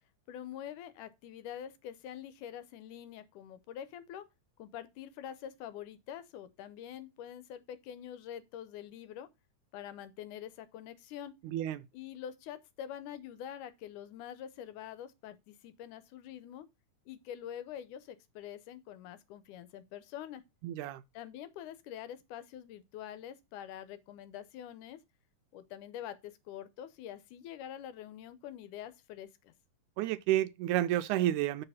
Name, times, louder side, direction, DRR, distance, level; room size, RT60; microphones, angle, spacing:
voice 1, 0.3-4.3 4.6-9.3 9.7-11.4 11.9-16.7 17.1-20.4 21.1-25.0 25.5-29.5, left 10 dB, 80° left, 2.3 m, -45 dB
voice 2, 20.6-21.0 30.0-31.6, right 13 dB, 80° right, 2.0 m, -30 dB
6.7 x 4.8 x 5.6 m
omnidirectional pair, 3.6 m